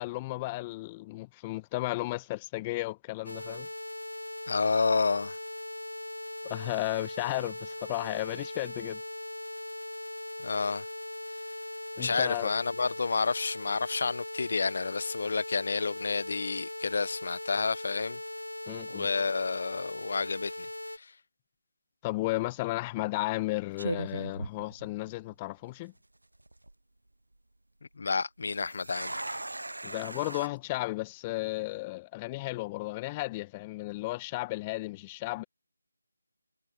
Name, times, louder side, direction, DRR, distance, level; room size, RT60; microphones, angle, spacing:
voice 1, 0.0-3.7 6.5-9.0 12.0-12.5 18.7-19.1 22.0-25.9 29.8-35.4, left 20 dB, 15° left, 1.2 m, -34 dB
sound 1, 3.3-21.0, left 1 dB, 85° left, 1.8 m, -40 dB
voice 2, 4.5-5.4 10.4-10.8 12.0-18.2 18.9-20.7 21.0-21.1 28.0-29.4, left 4 dB, 50° left, 1.1 m, -30 dB
sound 2, 22.2-22.5 23.3-23.4 23.8-25.3 25.6-25.7 26.3-26.7 28.5-30.5, right 2 dB, 80° right, 0.6 m, -38 dB
figure-of-eight pair, 155°, 0 cm